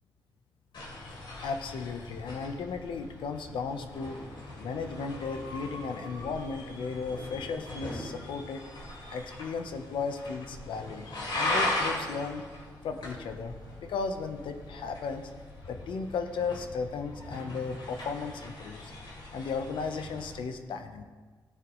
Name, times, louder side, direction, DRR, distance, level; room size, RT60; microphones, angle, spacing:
sound 1, 0.7-20.4, left 1 dB, 70° left, 3.4 m, -39 dB
voice 1, 1.4-4.2 4.6-8.6 9.1-11.1 11.3-12.5 12.8-15.3 15.7-18.9 19.3-21.0, left 5 dB, 85° left, 7 dB, 0.9 m, -35 dB
17.5 x 9.2 x 3.2 m, 1.4 s
cardioid pair, 95°, 8 cm